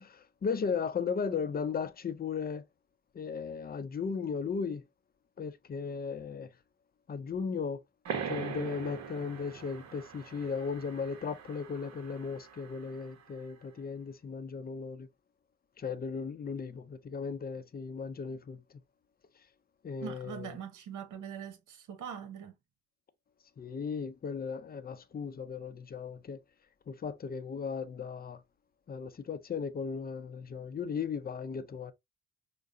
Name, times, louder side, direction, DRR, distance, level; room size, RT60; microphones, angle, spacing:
voice 1, 0.0-2.6 3.1-4.8 5.4-6.5 7.1-7.8 8.3-15.1 15.8-18.6 19.8-20.6 23.6-26.4 26.9-28.4 28.9-31.9, left 5 dB, 30° left, 0.6 m, -36 dB
sound 1, 8.0-13.3, right 6 dB, 60° right, 1.0 m, -42 dB
voice 2, 20.0-22.5, right 8 dB, 80° right, 1.0 m, -42 dB
4.7 x 2.2 x 2.6 m
cardioid pair, 90°, 30 cm